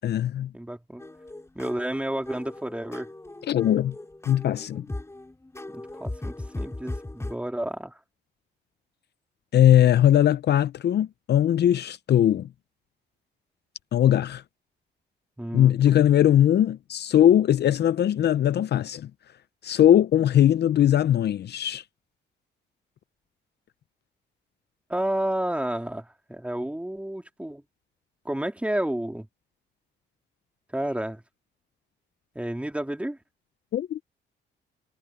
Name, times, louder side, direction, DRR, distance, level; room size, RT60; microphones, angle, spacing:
voice 1, 0.0-0.5 3.5-3.9 4.3-4.8 9.5-12.5 13.9-14.4 15.5-19.1 19.6-21.8 33.7-34.0, left 11 dB, 60° left, 0.6 m, -20 dB
voice 2, 0.5-1.0 1.5-3.1 5.7-8.0 15.4-16.0 24.9-27.6 28.2-29.3 30.7-31.2 32.3-33.2, right 1 dB, 5° right, 3.1 m, -31 dB
sound 1, 1.0-7.3, left 2 dB, 15° left, 6.7 m, -38 dB
cardioid pair, 90°, 20 cm